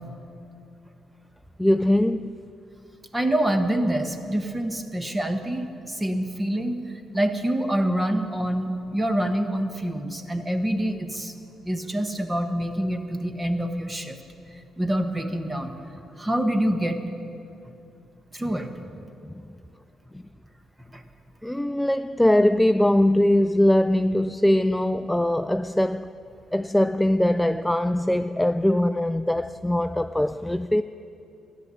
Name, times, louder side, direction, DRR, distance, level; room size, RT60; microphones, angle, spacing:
voice 1, 1.6-2.4 19.2-19.4 21.4-26.1 26.5-30.8, left 1 dB, 5° left, 0.3 m, -21 dB
voice 2, 3.1-6.8 7.1-11.3 11.6-14.2 14.8-15.7 16.2-17.0 18.3-18.7 20.9-21.0, right 1 dB, 15° right, 1.3 m, -26 dB
13.5 x 11.0 x 8.4 m
cardioid pair, 90°, 0 cm